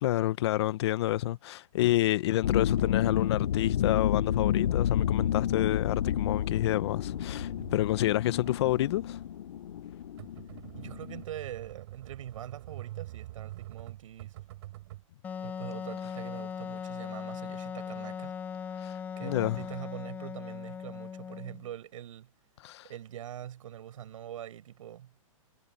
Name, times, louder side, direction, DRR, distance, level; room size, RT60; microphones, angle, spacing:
voice 1, 0.0-9.2 18.8-18.9 19.2-19.6 22.6-22.9, left 15 dB, 50° left, 0.9 m, -28 dB
sound 1, 2.4-11.2, left 10 dB, 75° left, 1.0 m, -30 dB
sound 2, 2.7-15.0, right 16 dB, 50° right, 4.3 m, -48 dB
voice 2, 10.7-14.4 15.4-18.4 18.7-18.8 19.2-22.3 22.8-25.1, right 11 dB, 65° right, 7.3 m, -43 dB
Wind instrument woodwind instrument, 15.2-21.7, left 7 dB, 10° left, 0.5 m, -39 dB
hypercardioid pair, 155°, 18 cm